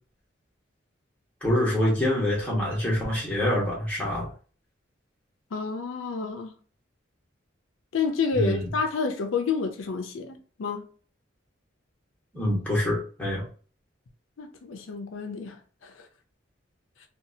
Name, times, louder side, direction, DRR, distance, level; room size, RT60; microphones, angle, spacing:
voice 1, 1.4-4.3 8.3-8.7 12.3-13.4, left 1 dB, 5° left, 1.2 m, -25 dB
voice 2, 5.5-6.5 7.9-10.9 14.4-15.9, left 5 dB, 90° left, 0.5 m, -29 dB
2.7 x 2.3 x 2.6 m
head